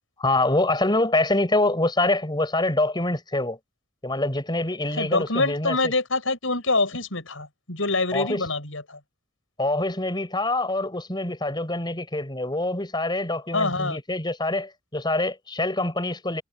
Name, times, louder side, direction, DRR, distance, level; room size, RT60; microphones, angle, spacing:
voice 1, 0.2-3.6 4.0-5.8 8.1-8.4 9.6-16.4, left 2 dB, 20° left, 5.8 m, -25 dB
voice 2, 4.9-9.0 13.5-14.0, left 3 dB, 75° left, 7.3 m, -25 dB
head